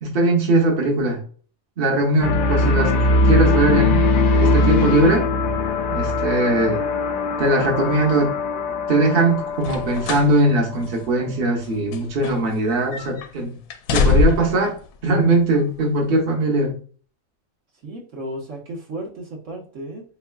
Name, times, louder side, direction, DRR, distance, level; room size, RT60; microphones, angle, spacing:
voice 1, 0.0-1.2 1.8-2.9 3.2-4.1 4.4-5.3 5.9-6.8 7.4-8.4 8.9-13.5 13.9-14.7 15.0-16.8, right 2 dB, 45° right, -1 dB, 1.0 m, -20 dB
sound 1, 2.2-10.4, left 3 dB, 60° left, 0.5 m, -20 dB
sound 2, 9.6-10.3 10.7-10.9 11.6-12.6 12.9-13.3 13.7-14.6 15.5-15.6, left 4 dB, 85° left, 1.0 m, -22 dB
voice 2, 17.8-20.0, right 1 dB, 65° right, 0 dB, 1.3 m, -34 dB
3.6 x 3.1 x 2.2 m, 0.41 s
omnidirectional pair, 1.4 m